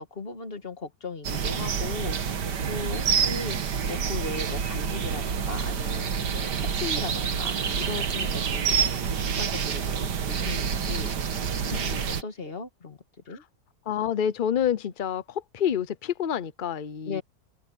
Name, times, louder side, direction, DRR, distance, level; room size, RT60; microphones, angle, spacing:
voice 1, 0.0-2.4 2.7-3.6 3.9-11.1 11.7-13.0 13.3-13.4 17.1-17.2, left 4 dB, 35° left, 1.8 m, -37 dB
sound 1, 1.2-12.2, right 7 dB, 70° right, 2.0 m, -28 dB
voice 2, 13.9-17.2, left 9 dB, 75° left, 0.4 m, -28 dB
omnidirectional pair, 1.9 m